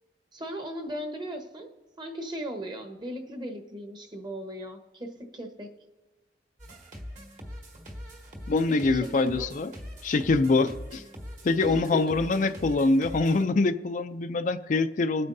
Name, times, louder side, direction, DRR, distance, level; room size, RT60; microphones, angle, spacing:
voice 1, 0.3-1.7 2.0-5.7 8.7-9.5 11.6-12.1, right 1 dB, 25° right, 5 dB, 1.2 m, -37 dB
sound 1, 6.6-13.5, equal, 45° right, 1.8 m, -42 dB
voice 2, 8.5-9.7 10.0-11.0 11.4-15.3, left 3 dB, 45° left, 9 dB, 0.4 m, -24 dB
21.5 x 8.9 x 2.7 m, 1.2 s
head